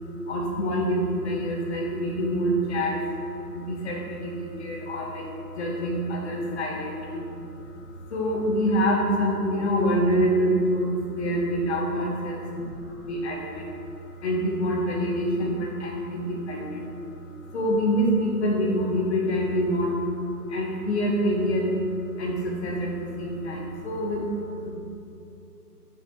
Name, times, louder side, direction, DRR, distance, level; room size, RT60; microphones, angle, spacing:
voice 1, 0.2-3.0 3.5-7.7 8.1-12.4 13.1-13.7 14.2-16.9 17.5-20.0 20.5-21.7 22.2-24.7, equal, 40° left, -1 dB, 1.6 m, -26 dB
6.9 x 6.0 x 4.8 m, 2.7 s
hypercardioid pair, 155°, 48 cm